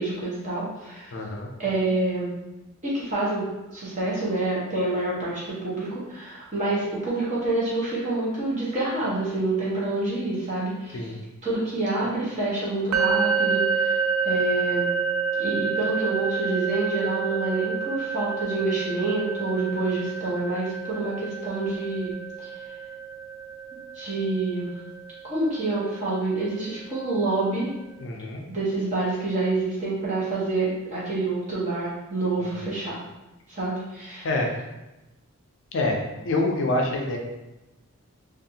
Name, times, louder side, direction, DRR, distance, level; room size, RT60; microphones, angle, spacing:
voice 1, 0.0-1.1 1.6-2.3 2.8-11.1 11.4-13.9 14.2-14.9 15.4-22.5 23.9-24.7 25.2-27.7 28.5-33.0 33.5-34.3, right 2 dB, 35° right, -8 dB, 0.9 m, -27 dB
voice 2, 1.1-1.5 10.9-11.2 28.0-28.4 32.4-32.5 34.2-34.5 35.7-37.2, left 2 dB, 55° left, 1 dB, 0.4 m, -26 dB
sound 1, 12.9-26.8, right 5 dB, 75° right, 0.3 m, -29 dB
2.6 x 2.3 x 2.7 m, 0.99 s
head